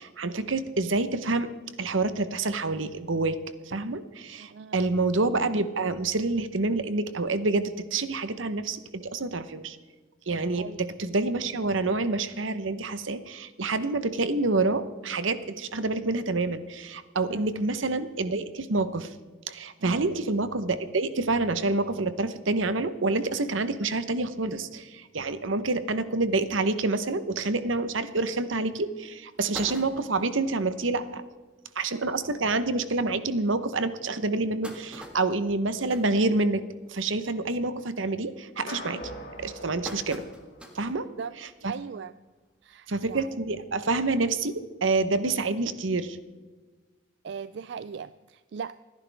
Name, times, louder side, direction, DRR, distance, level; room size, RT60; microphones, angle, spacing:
voice 1, 0.0-1.5 1.8-3.4 3.7-9.8 10.3-10.7 11.0-19.1 19.5-31.2 31.7-36.6 36.9-39.0 39.4-40.2 40.7-41.0 41.6-41.7 42.9-46.2, right 3 dB, 80° right, 12 dB, 1.0 m, -27 dB
voice 2, 4.4-4.9 10.6-10.8 17.3-17.5 19.8-20.1 29.5-29.7 31.9-32.0 41.2-41.3 41.7-42.1 42.6-43.3 47.2-48.8, right 6 dB, 60° right, 14 dB, 0.3 m, -39 dB
sound 1, 28.4-28.5 29.0-29.1 29.3-30.4 30.9-31.0 31.3-31.4 31.7-31.9 32.6-32.7 33.2-33.3 34.1-36.9 37.3-37.6 38.0-38.4 39.0-41.0 41.4-41.5 42.7-42.8, equal, 5° right, 1.7 m, -44 dB
sound 2, 38.7-41.1, left 1 dB, 55° left, 3.5 m, -42 dB
29.0 x 10.5 x 3.5 m, 1.3 s
head